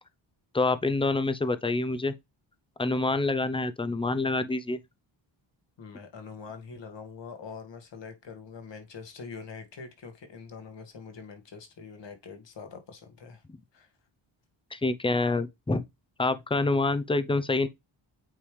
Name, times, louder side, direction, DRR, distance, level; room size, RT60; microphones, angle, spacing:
voice 1, 0.5-2.2 2.8-4.8 14.7-15.8 16.2-17.7, left 3 dB, 10° left, 0.6 m, -26 dB
voice 2, 5.8-13.4 13.7-13.9, left 5 dB, 60° left, 1.9 m, -44 dB
8.7 x 3.4 x 3.3 m
cardioid pair, 70°, 49 cm